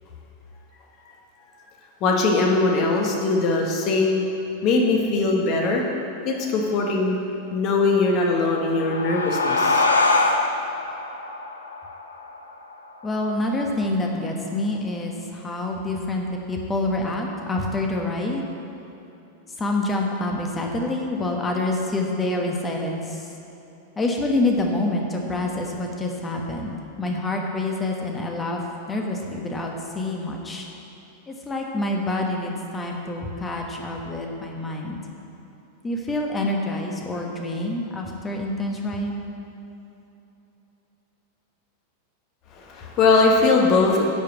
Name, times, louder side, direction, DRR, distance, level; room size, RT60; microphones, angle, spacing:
voice 1, 2.0-4.2 4.6-5.8 6.2-7.2 7.5-9.8 42.5-44.1, left 3 dB, 40° left, 0 dB, 1.6 m, -20 dB
sound 1, 8.4-13.6, left 3 dB, 75° left, 0.8 m, -24 dB
voice 2, 13.0-18.4 19.6-23.3 23.9-28.6 28.9-30.7 31.3-35.0 35.8-39.2, left 2 dB, 15° left, 1 dB, 1.4 m, -27 dB
11.0 x 5.2 x 7.2 m, 3.0 s
figure-of-eight pair, 90°, 0 cm